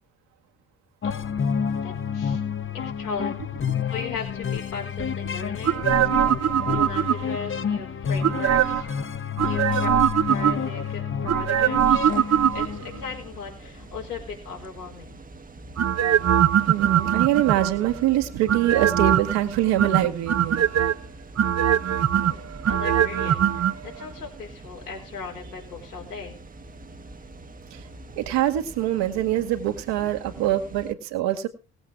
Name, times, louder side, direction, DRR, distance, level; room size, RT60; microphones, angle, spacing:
voice 1, 1.0-2.4 2.7-3.4 3.9-6.0 6.7-8.9 9.4-10.0 10.3-12.1 12.5-15.2 22.2-26.4, left 5 dB, 85° left, -2 dB, 4.3 m, -37 dB
sound 1, 1.0-13.3, left 7 dB, 25° left, 1.0 m, -29 dB
sound 2, 5.6-7.5 8.2-8.9 9.4-10.8 11.3-13.0 15.8-17.9 18.5-19.4 19.8-20.9 21.4-23.7 24.0-24.1, right 9 dB, 35° right, 0.9 m, -21 dB
voice 2, 6.2-6.7 9.4-9.5 16.7-20.6 27.7-27.9 28.2-31.5, right 13 dB, 65° right, 6 dB, 2.1 m, -24 dB
sound 3, 11.8-30.9, right 2 dB, 20° right, 1.2 m, -44 dB
18.5 x 7.9 x 4.8 m, 0.34 s
figure-of-eight pair, 50°, 45 cm